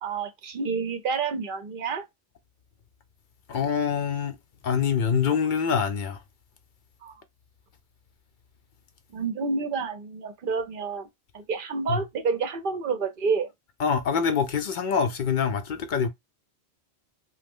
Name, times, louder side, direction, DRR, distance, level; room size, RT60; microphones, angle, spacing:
voice 1, 0.0-2.0 7.0-7.2 9.1-11.1 11.3-13.5, right 5 dB, 60° right, 0.7 m, -29 dB
voice 2, 3.5-4.4 4.6-6.2 11.9-12.0 13.8-16.1, left 6 dB, 60° left, 0.6 m, -25 dB
3.0 x 2.1 x 3.5 m
omnidirectional pair, 1.1 m